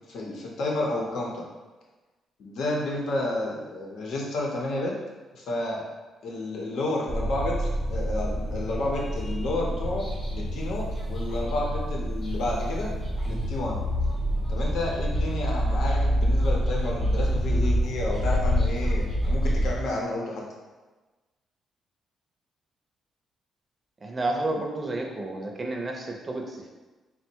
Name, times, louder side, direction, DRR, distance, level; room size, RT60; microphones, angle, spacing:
voice 1, 0.1-1.4 2.4-4.9 5.3-5.8 6.2-10.0 10.3-12.9 13.3-13.8 14.5-20.4, left 2 dB, 65° left, -2 dB, 0.8 m, -31 dB
sound 1, 7.1-19.7, equal, 30° left, 0.9 m, -27 dB
voice 2, 24.0-26.7, right 2 dB, 25° right, 1 dB, 0.5 m, -31 dB
4.0 x 2.1 x 4.4 m, 1.2 s
cardioid pair, 145°, 0 cm